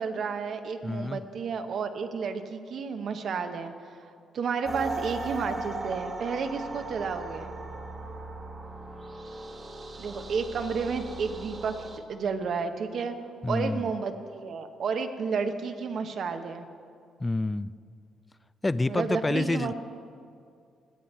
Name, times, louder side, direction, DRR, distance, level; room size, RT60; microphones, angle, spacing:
voice 1, 0.0-7.5 10.0-13.2 13.5-16.7 18.9-19.7, right 5 dB, 60° right, 7 dB, 0.8 m, -32 dB
voice 2, 0.8-1.2 13.4-13.8 17.2-17.7 18.6-19.7, left 2 dB, 15° left, 16 dB, 0.3 m, -28 dB
sound 1, 4.6-12.0, right 2 dB, 30° right, 1.2 m, -38 dB
17.5 x 8.3 x 4.4 m, 2.3 s
cardioid pair, 90°, 0 cm